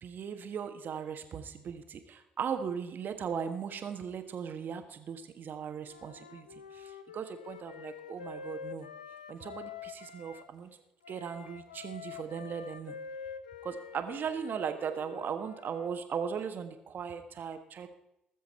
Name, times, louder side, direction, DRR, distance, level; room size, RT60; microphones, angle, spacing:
voice 1, 0.0-8.9 9.3-10.7 11.1-13.0 13.6-17.9, right 7 dB, 50° right, 8 dB, 1.3 m, -38 dB
Wind instrument woodwind instrument, 5.8-10.5 11.0-15.9, left 6 dB, 90° left, 0.5 m, -46 dB
20.0 x 7.4 x 4.3 m, 0.84 s
figure-of-eight pair, 45°, 4 cm